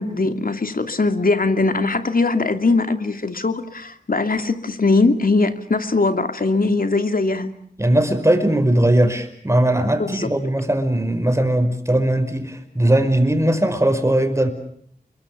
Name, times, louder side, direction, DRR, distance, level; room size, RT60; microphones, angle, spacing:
voice 1, 0.0-7.5 10.0-10.3, left 3 dB, 60° left, 8 dB, 2.7 m, -20 dB
voice 2, 7.8-14.5, right 1 dB, 15° right, 8 dB, 5.6 m, -19 dB
30.0 x 23.0 x 6.9 m, 0.65 s
cardioid pair, 45°, 17 cm